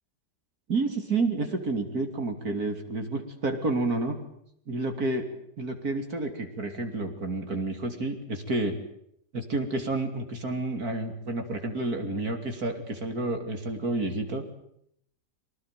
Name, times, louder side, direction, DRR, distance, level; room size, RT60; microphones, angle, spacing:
voice 1, 0.7-4.2 4.7-5.3 5.6-8.8 9.3-14.4, right 2 dB, 60° right, 5 dB, 3.6 m, -30 dB
25.0 x 19.0 x 9.4 m, 0.72 s
omnidirectional pair, 1.8 m